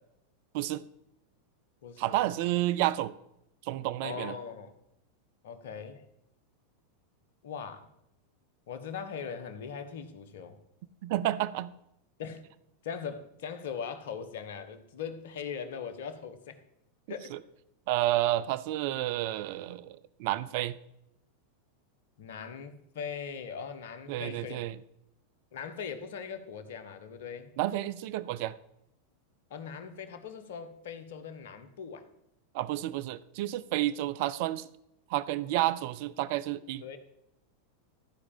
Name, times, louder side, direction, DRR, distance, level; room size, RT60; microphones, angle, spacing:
voice 1, 0.5-0.9 2.0-3.1 3.6-4.3 11.0-11.7 17.3-17.4 17.9-20.7 24.1-24.8 27.6-28.5 32.5-34.7 35.1-36.8, right 15 dB, 60° right, 17 dB, 0.5 m, -30 dB
voice 2, 1.8-2.2 4.0-4.7 5.4-6.0 7.4-7.9 8.7-10.6 12.2-12.4 12.8-16.6 17.1-17.3 22.2-24.7 25.5-27.5 29.5-32.0 36.8-37.0, left 6 dB, 70° left, 10 dB, 1.5 m, -40 dB
14.5 x 4.9 x 7.3 m, 0.80 s
hypercardioid pair, 95°, 0 cm